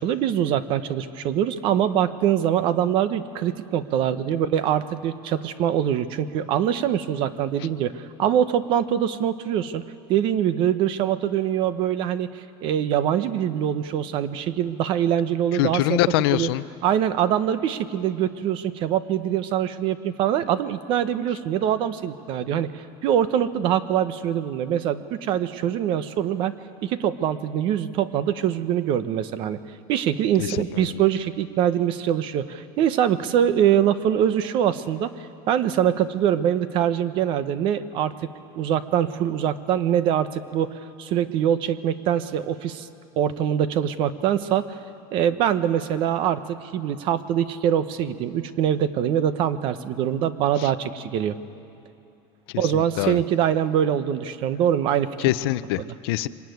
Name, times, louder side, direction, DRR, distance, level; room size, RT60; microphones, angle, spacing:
voice 1, 0.0-12.3 12.6-16.0 16.3-16.5 16.8-26.6 26.8-29.6 29.9-35.1 35.5-38.1 38.5-42.9 43.2-44.7 45.1-51.4 52.6-55.1 55.8-55.9, right 10 dB, 40° right, 13 dB, 0.9 m, -23 dB
voice 2, 15.5-16.6 30.4-31.0 50.6-50.7 52.7-53.2 55.2-56.3, left 16 dB, 80° left, 15 dB, 0.7 m, -24 dB
24.5 x 20.0 x 9.4 m, 2.7 s
cardioid pair, 170°, 13 cm